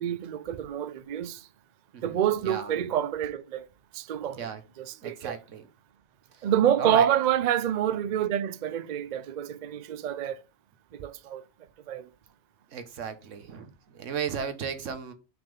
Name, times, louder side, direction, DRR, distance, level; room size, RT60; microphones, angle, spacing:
voice 1, 0.0-1.5 2.0-3.7 3.9-4.4 4.8-5.4 6.4-10.4 10.9-11.4 11.9-12.1, right 10 dB, 55° right, 0.5 m, -27 dB
voice 2, 5.0-5.6 6.4-6.5 6.8-7.1 12.7-15.1, right 7 dB, 90° right, 1.3 m, -35 dB
6.0 x 3.7 x 5.2 m
omnidirectional pair, 1.2 m